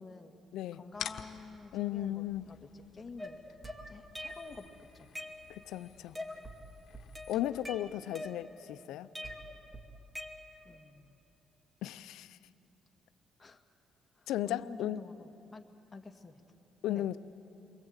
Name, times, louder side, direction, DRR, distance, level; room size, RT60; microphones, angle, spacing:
voice 1, 0.0-0.3 0.7-3.4 3.9-5.2 10.6-11.2 13.4-13.6 14.2-15.6 15.9-16.4 16.9-17.1, left 4 dB, 25° left, 4 dB, 1.8 m, -49 dB
sound 1, 0.9-7.9, left 9 dB, 75° left, 1.2 m, -50 dB
voice 2, 1.7-2.4 5.5-6.2 7.3-9.1 11.8-12.4 14.3-15.0 16.8-17.2, left 13 dB, 90° left, 13 dB, 0.6 m, -35 dB
sound 2, 3.2-4.6 4.9-5.8 6.1-6.6 6.9-8.7 9.1-10.8, left 1 dB, 10° right, 2.3 m, -44 dB
29.0 x 22.5 x 8.1 m, 2.9 s
cardioid pair, 90°, 0 cm